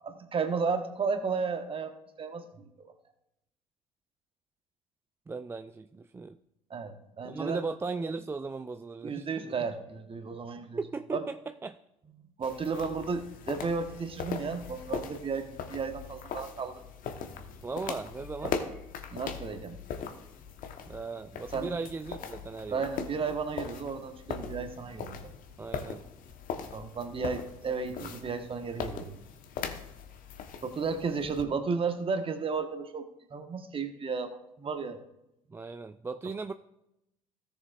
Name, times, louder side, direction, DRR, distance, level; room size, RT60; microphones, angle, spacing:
voice 1, 0.0-1.9 2.2-2.9 6.7-7.6 9.0-10.8 11.1-11.2 12.4-16.7 18.4-18.5 19.1-19.8 21.5-21.8 22.7-25.3 26.7-29.2 30.6-35.0, right 5 dB, 30° right, 7 dB, 1.3 m, -33 dB
voice 2, 5.3-6.4 7.2-9.5 10.8-11.8 17.6-18.6 20.9-22.9 25.6-26.0 35.5-36.5, right 4 dB, 15° right, 10 dB, 0.3 m, -37 dB
sound 1, 12.4-31.4, left 6 dB, 50° left, 1.1 m, -40 dB
16.5 x 6.8 x 2.5 m, 0.87 s
figure-of-eight pair, 55°, 17 cm